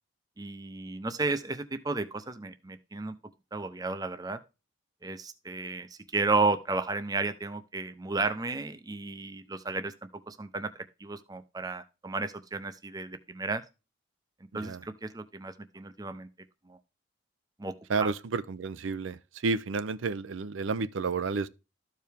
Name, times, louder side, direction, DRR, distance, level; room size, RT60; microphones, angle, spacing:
voice 1, 0.4-3.1 3.5-4.4 5.0-5.9 6.1-13.6 14.5-16.3 16.7-16.8 17.6-18.1, right 3 dB, 20° right, 0.6 m, -33 dB
voice 2, 14.5-14.8 17.9-21.5, right 4 dB, 80° right, 0.5 m, -31 dB
13.5 x 4.7 x 3.4 m
head